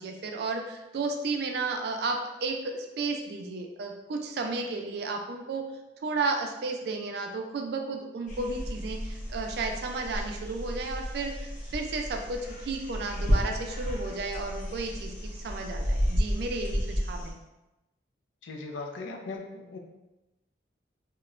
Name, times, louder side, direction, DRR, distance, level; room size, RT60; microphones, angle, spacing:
voice 1, 0.0-5.6 6.0-17.4, right 3 dB, 60° right, 3 dB, 0.3 m, -33 dB
sound 1, 8.3-17.3, equal, 45° left, 0.6 m, -32 dB
voice 2, 18.4-19.8, left 3 dB, 90° left, 2 dB, 0.4 m, -38 dB
2.9 x 2.1 x 2.4 m, 0.99 s
head